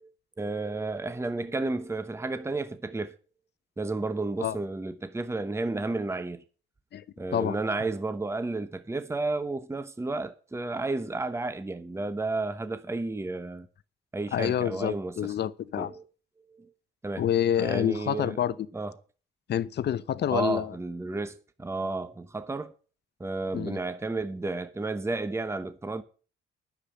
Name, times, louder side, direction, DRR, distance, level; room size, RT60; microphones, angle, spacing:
voice 1, 0.4-3.1 3.8-6.4 7.2-13.7 14.1-15.3 15.8-16.0 16.5-16.7 17.0-17.3 17.6-18.4 18.7-18.9 20.3-22.7 23.2-26.0, right 3 dB, 15° right, 1.0 m, -32 dB
voice 2, 14.3-15.9 17.2-18.5 19.5-20.7 23.5-23.8, left 10 dB, 60° left, 0.8 m, -27 dB
9.8 x 7.4 x 8.6 m
cardioid pair, 90°, 20 cm